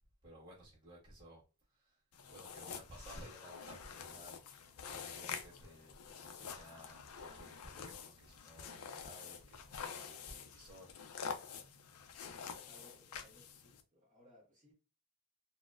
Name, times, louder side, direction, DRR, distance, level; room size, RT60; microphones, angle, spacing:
voice 1, 0.2-1.4 1.7-2.0 2.3-4.4 4.8-11.7, right 1 dB, 20° right, 1.4 m, -56 dB
sound 1, 2.1-13.8, left 6 dB, 85° left, 0.5 m, -48 dB
voice 2, 12.5-14.7, equal, 35° right, 1.1 m, -64 dB
4.0 x 2.1 x 2.4 m
head